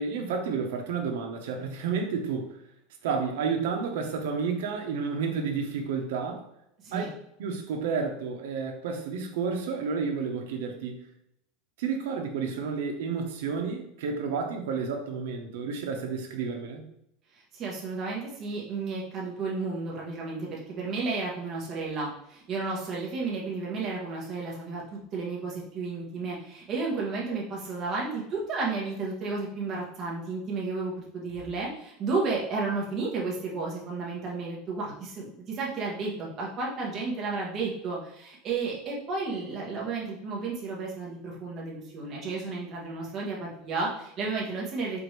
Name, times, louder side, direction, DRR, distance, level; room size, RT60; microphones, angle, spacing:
voice 1, 0.0-2.6 3.0-6.5 6.9-7.1 7.4-11.0 11.8-16.8, right 5 dB, 75° right, 3 dB, 0.8 m, -31 dB
voice 2, 17.5-45.0, right 3 dB, 25° right, -3 dB, 1.0 m, -32 dB
4.9 x 2.6 x 3.1 m, 0.78 s
supercardioid pair, 175°, 0 cm